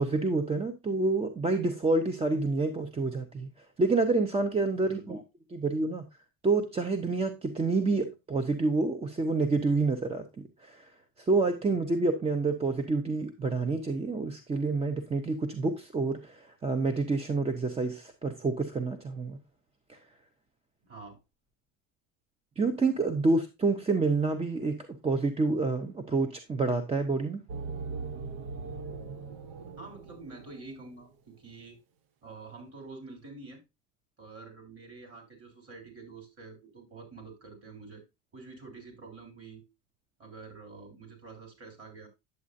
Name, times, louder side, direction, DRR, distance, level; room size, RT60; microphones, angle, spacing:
voice 1, 0.0-3.5 3.8-5.2 5.5-6.0 6.4-10.9 11.2-19.4 19.9-20.0 22.6-27.4, right 3 dB, 15° right, 0.6 m, -28 dB
voice 2, 4.8-5.1 20.8-21.2 29.8-31.8 32.2-33.6 34.2-38.0 38.3-39.6 40.2-42.1, right 3 dB, 35° right, 3.5 m, -47 dB
sound 1, 27.5-30.9, right 4 dB, 60° right, 0.9 m, -40 dB
9.4 x 7.5 x 2.5 m
cardioid pair, 135°, 40 cm